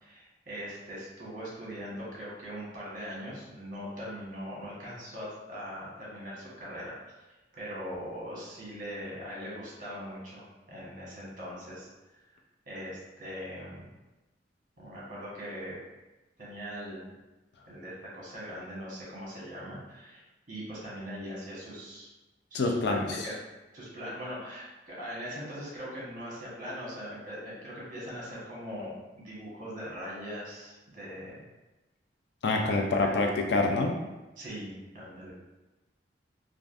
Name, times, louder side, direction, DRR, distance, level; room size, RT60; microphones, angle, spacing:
voice 1, 0.0-6.9 7.5-11.9 12.7-13.9 14.8-15.8 16.4-17.1 17.7-22.1 22.5-23.3 23.7-31.4 32.6-33.1 34.4-35.3, equal, 45° right, -6 dB, 1.1 m, -41 dB
voice 2, 22.5-23.2 32.4-33.9, left 3 dB, 65° left, 2 dB, 0.4 m, -26 dB
3.4 x 2.4 x 2.5 m, 1.1 s
head